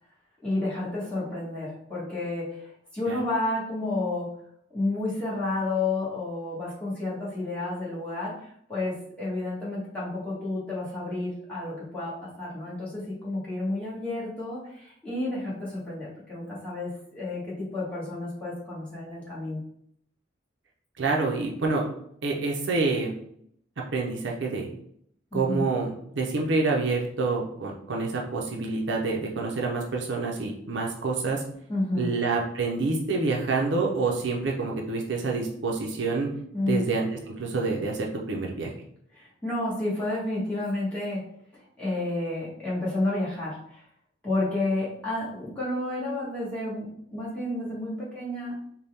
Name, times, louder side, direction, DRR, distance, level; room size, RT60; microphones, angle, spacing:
voice 1, 0.4-2.7 2.9-4.3 4.7-8.3 8.7-16.9 17.1-17.4 17.7-19.6 25.3-25.6 31.7-32.1 36.5-36.8 39.1-41.2 41.8-43.8 44.2-46.9 47.1-48.5, left 2 dB, 5° left, -9 dB, 1.5 m, -30 dB
voice 2, 21.0-21.8 22.2-23.1 23.9-24.7 25.3-31.4 31.9-36.3 36.6-37.1 37.4-38.7, right 3 dB, 65° right, 0 dB, 0.6 m, -27 dB
4.1 x 2.2 x 3.5 m, 0.69 s
head